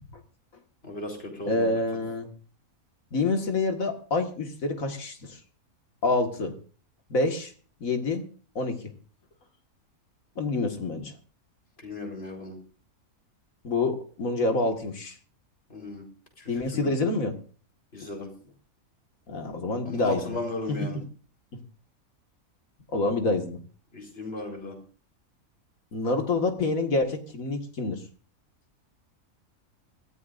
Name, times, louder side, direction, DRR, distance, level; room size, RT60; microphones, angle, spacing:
voice 1, 0.8-1.7 11.8-12.6 15.7-16.0 16.4-16.9 17.9-18.3 19.8-21.0 23.9-24.8, left 2 dB, 40° left, 2 dB, 4.6 m, -35 dB
voice 2, 1.5-2.3 3.1-5.4 6.0-6.5 7.1-7.5 7.8-8.2 8.6-8.8 10.4-11.1 13.6-15.2 16.5-17.4 19.3-20.4 22.9-23.6 25.9-28.0, left 3 dB, 65° left, 5 dB, 2.2 m, -27 dB
24.5 x 14.5 x 2.6 m, 0.39 s
omnidirectional pair, 1.5 m